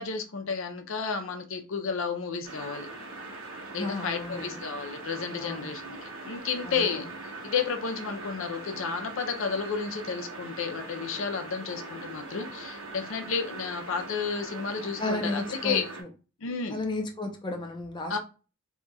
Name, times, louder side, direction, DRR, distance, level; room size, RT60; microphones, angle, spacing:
voice 1, 0.0-2.9 3.7-7.1 7.4-15.8 16.4-16.8 18.1-18.2, left 5 dB, 65° left, 0.6 m, -32 dB
sound 1, 2.4-16.0, right 2 dB, 85° right, 1.1 m, -41 dB
voice 2, 3.7-4.6 5.4-5.7 6.6-7.0 15.0-16.1 16.7-18.2, left 2 dB, 20° left, 0.6 m, -33 dB
2.8 x 2.3 x 4.0 m
head